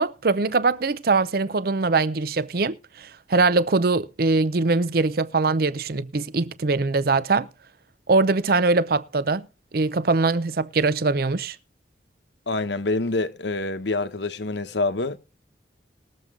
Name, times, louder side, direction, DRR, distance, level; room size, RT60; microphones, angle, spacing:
voice 1, 0.0-7.5 8.1-9.5 9.7-11.6, right 3 dB, 55° right, 0.6 m, -22 dB
voice 2, 12.5-15.2, left 2 dB, 70° left, 1.0 m, -26 dB
20.0 x 7.3 x 3.7 m
head